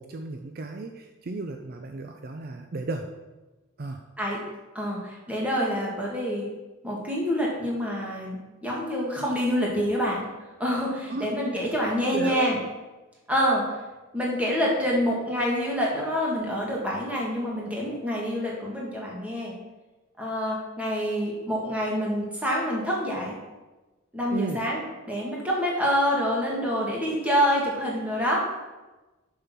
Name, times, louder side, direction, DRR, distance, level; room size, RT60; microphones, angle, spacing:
voice 1, 0.0-3.1 3.8-4.0 11.1-11.3 12.1-12.5 24.3-24.7, right 3 dB, 45° right, 5 dB, 0.5 m, -34 dB
voice 2, 4.8-6.5 6.8-8.4 8.6-10.3 10.6-12.6 13.3-13.6 14.1-19.5 20.2-23.4 24.1-24.8 25.1-28.5, equal, 5° right, -4 dB, 1.8 m, -26 dB
6.7 x 5.6 x 6.0 m, 1.1 s
head